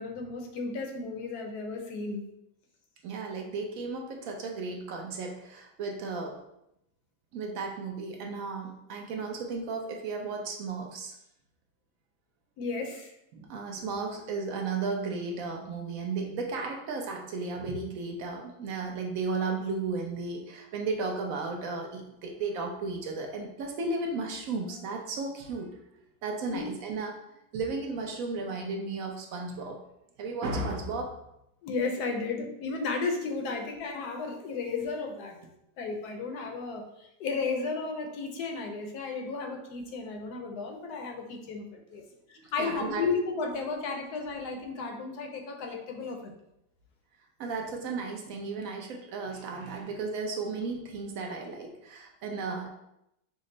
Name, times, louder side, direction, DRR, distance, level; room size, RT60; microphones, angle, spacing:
voice 1, 0.0-2.2 12.6-13.1 26.5-26.7 31.6-35.4 35.8-42.0 42.5-46.3, left 4 dB, 70° left, 3 dB, 1.1 m, -34 dB
voice 2, 3.0-6.4 7.3-11.1 13.3-25.8 26.2-27.1 27.5-29.8 30.2-31.1 42.4-43.0 47.4-52.7, right 3 dB, 65° right, 2 dB, 0.8 m, -34 dB
5.2 x 2.1 x 3.8 m, 0.81 s
omnidirectional pair, 2.0 m